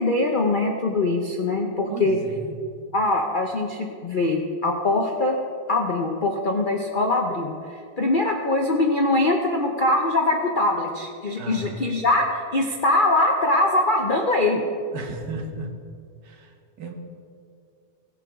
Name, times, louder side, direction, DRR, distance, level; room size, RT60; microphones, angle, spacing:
voice 1, 0.0-2.2 2.9-5.4 5.7-14.6, left 2 dB, 55° left, 2 dB, 0.5 m, -22 dB
voice 2, 1.9-2.6 11.4-12.0 14.9-15.8 16.2-16.9, right 2 dB, 75° right, 3 dB, 2.0 m, -35 dB
17.5 x 7.0 x 4.8 m, 2.3 s
omnidirectional pair, 1.9 m